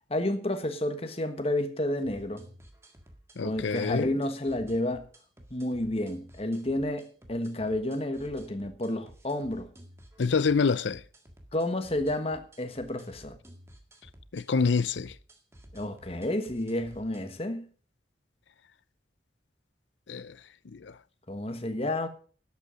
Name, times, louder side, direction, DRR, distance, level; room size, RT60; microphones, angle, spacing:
voice 1, 0.1-2.5 3.4-5.1 5.5-9.7 11.5-13.4 15.7-17.7 21.3-22.1, left 1 dB, 30° left, 1.3 m, -30 dB
sound 1, 2.0-17.4, equal, 15° right, 1.8 m, -53 dB
voice 2, 3.4-4.1 10.2-11.0 14.3-15.1 20.1-20.4 20.6-21.0, left 5 dB, 75° left, 0.6 m, -27 dB
12.0 x 8.4 x 6.3 m
head